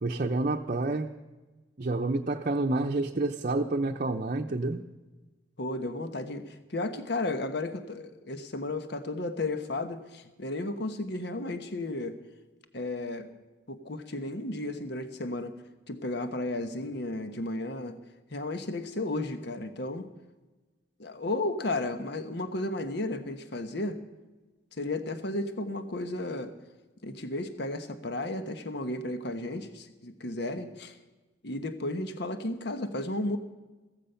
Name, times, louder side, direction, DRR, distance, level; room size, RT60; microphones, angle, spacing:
voice 1, 0.0-1.1 1.8-4.8, right 2 dB, 45° right, 3 dB, 0.7 m, -28 dB
voice 2, 5.6-12.2 12.7-13.3 13.7-15.5 15.9-18.0 18.3-20.1 21.0-24.0 24.8-26.5 27.0-30.9 31.4-33.4, left 2 dB, 60° left, 9 dB, 1.2 m, -33 dB
15.0 x 14.5 x 5.7 m, 1.2 s
head